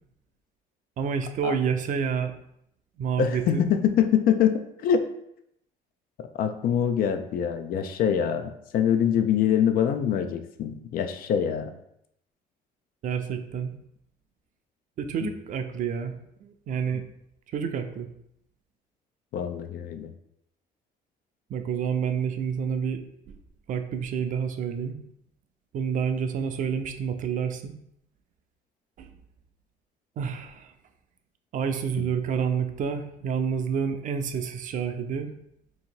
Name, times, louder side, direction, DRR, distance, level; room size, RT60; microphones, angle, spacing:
voice 1, 1.0-2.3 3.0-3.6 13.0-13.7 15.0-16.1 16.4-17.0 17.5-18.1 21.5-23.0 23.3-23.4 23.7-25.0 25.7-27.7 29.0-29.1 30.2-30.7 31.5-35.3, right 7 dB, 50° right, 7 dB, 0.4 m, -29 dB
voice 2, 3.2-5.0 6.2-11.7 15.2-15.3 19.3-20.1, left 8 dB, 60° left, 8 dB, 0.4 m, -24 dB
2.9 x 2.7 x 4.4 m, 0.76 s
cardioid pair, 110°, 17 cm